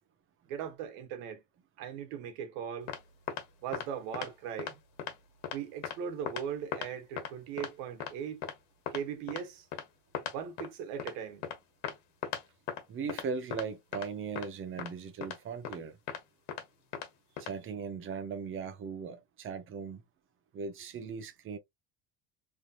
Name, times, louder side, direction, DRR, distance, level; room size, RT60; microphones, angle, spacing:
voice 1, 0.5-1.4 1.8-2.9 3.6-4.8 5.5-8.4 8.9-9.7 10.3-11.5, right 8 dB, 80° right, 1.3 m, -39 dB
sound 1, 2.9-3.0 3.3-3.4 3.7-3.9 4.1-4.3 4.6-4.7 5.0-5.1 5.4-5.6 5.8-6.0 6.3-6.4 6.7-6.9 7.2-7.3 7.6-7.7 8.0-8.1 8.4-8.5 8.9-9.0 9.3-9.4 9.7-9.8 10.1-10.3 10.6-10.7 11.0-11.1 11.4-11.6 11.8-11.9 12.2-12.4 12.7-12.8 13.1-13.2 13.5-13.6 13.9-14.1 14.4-14.5 14.8-14.9 15.2-15.4 15.6-15.8 16.1-16.2 16.5-16.6 16.9-17.1 17.4-17.5, left 9 dB, 85° left, 1.3 m, -37 dB
voice 2, 12.9-16.0 17.4-20.0 20.5-21.6, right 5 dB, 25° right, 0.6 m, -38 dB
3.3 x 2.8 x 2.5 m
cardioid pair, 150°, 47 cm